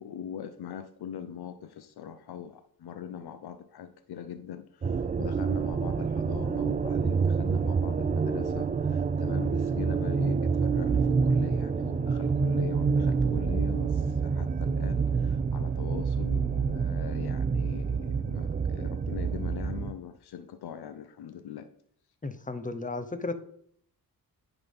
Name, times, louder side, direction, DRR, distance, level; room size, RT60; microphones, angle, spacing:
voice 1, 0.0-21.7, left 9 dB, 85° left, 9 dB, 0.7 m, -41 dB
sound 1, 4.8-19.9, right 5 dB, 25° right, 0.4 m, -27 dB
voice 2, 22.2-23.3, left 3 dB, 20° left, 10 dB, 1.0 m, -34 dB
9.9 x 4.1 x 5.3 m, 0.64 s
cardioid pair, 90°, 38 cm